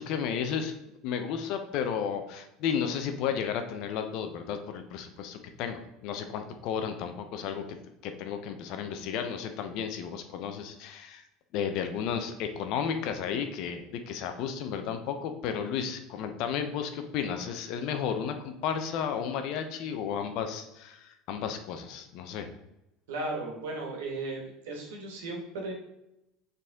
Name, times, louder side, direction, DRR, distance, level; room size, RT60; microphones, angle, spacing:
voice 1, 0.0-7.6 8.0-11.2 11.5-22.5, left 7 dB, 65° left, 7 dB, 0.8 m, -33 dB
voice 2, 23.1-25.7, right 2 dB, 90° right, 0 dB, 1.7 m, -36 dB
6.6 x 4.1 x 3.6 m, 0.89 s
supercardioid pair, 110°, 0 cm